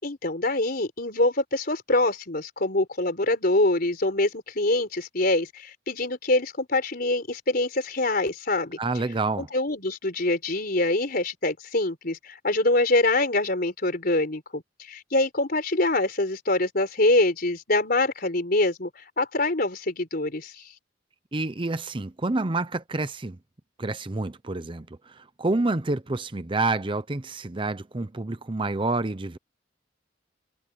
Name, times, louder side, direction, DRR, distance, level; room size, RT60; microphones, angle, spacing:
voice 1, 0.0-8.8 9.4-20.7, left 2 dB, 50° left, 4.3 m, -25 dB
voice 2, 8.8-9.5 21.3-23.4 23.8-29.4, right 2 dB, 25° right, 0.7 m, -28 dB
head